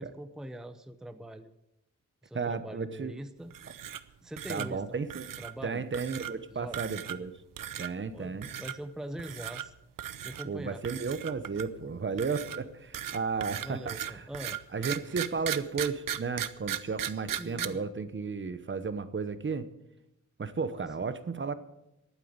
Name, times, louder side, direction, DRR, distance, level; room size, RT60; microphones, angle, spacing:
voice 1, 0.0-1.5 2.2-3.5 4.2-4.8 5.4-5.8 6.5-6.8 8.1-9.7 10.2-10.8 13.6-14.6 17.4-17.8 20.8-20.9, right 1 dB, ahead, 10 dB, 0.7 m, -42 dB
voice 2, 2.3-3.1 4.5-5.3 5.6-7.4 7.8-8.5 10.4-14.3 14.7-19.7 20.4-21.5, right 5 dB, 35° right, 12 dB, 0.9 m, -34 dB
sound 1, 3.5-4.1 4.4-4.7 5.1-5.5 5.9-6.3 6.7-7.3 7.6-7.9 8.4-8.7 9.2-9.7 10.0-10.5 10.8-11.8 12.2-17.7, right 10 dB, 80° right, 0.8 m, -37 dB
11.5 x 9.2 x 8.7 m, 0.86 s
wide cardioid pair, 125°, 33 cm